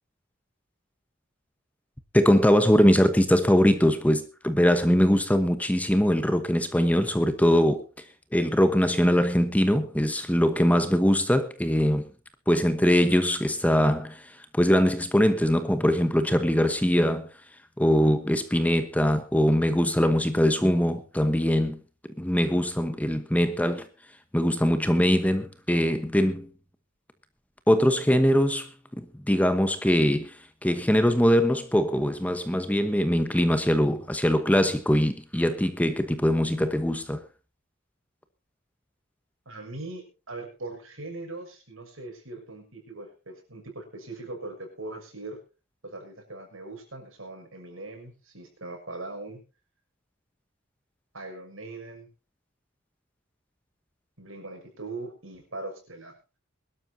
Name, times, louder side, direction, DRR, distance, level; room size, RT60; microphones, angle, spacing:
voice 1, 2.1-7.8 8.3-12.1 12.5-17.3 17.8-21.8 22.2-23.9 24.3-26.5 27.7-28.7 29.0-30.4 30.6-37.2, equal, 5° left, 1.0 m, -22 dB
voice 2, 39.4-45.4 45.8-49.4 51.1-52.1 54.2-56.1, right 2 dB, 80° right, 6.3 m, -40 dB
22.5 x 12.5 x 2.7 m
head